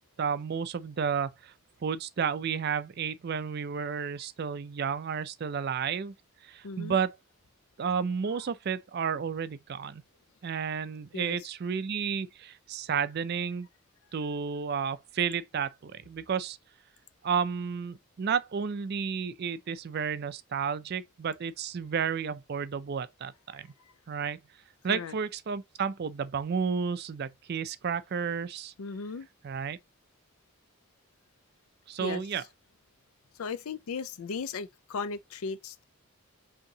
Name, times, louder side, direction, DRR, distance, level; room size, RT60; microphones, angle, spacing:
voice 1, 0.2-1.5 1.8-6.1 6.4-7.1 7.8-10.0 10.4-13.7 14.1-16.6 17.2-23.7 24.1-24.4 24.8-28.7 29.4-29.8 31.9-32.4, right 6 dB, 45° right, 0.4 m, -32 dB
voice 2, 6.6-7.0 8.3-8.4 11.1-11.4 24.8-25.1 28.8-29.3 32.0-32.4 33.4-35.8, left 5 dB, 80° left, 0.4 m, -37 dB
5.3 x 2.8 x 2.7 m
head